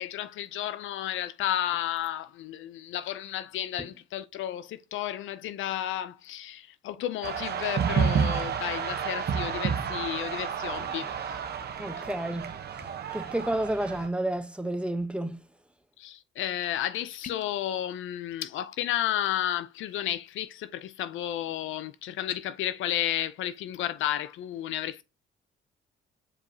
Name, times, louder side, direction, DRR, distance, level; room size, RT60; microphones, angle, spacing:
voice 1, 0.0-11.4 16.0-25.0, left 12 dB, 80° left, 0.6 m, -32 dB
sound 1, 7.2-14.1, right 7 dB, 55° right, 1.0 m, -30 dB
voice 2, 11.8-12.5 13.1-15.4, right 1 dB, 5° right, 0.9 m, -30 dB
sound 2, 17.2-17.6 22.2-22.4, left 8 dB, 40° left, 0.7 m, -43 dB
7.2 x 4.8 x 2.8 m
cardioid pair, 90°, 20 cm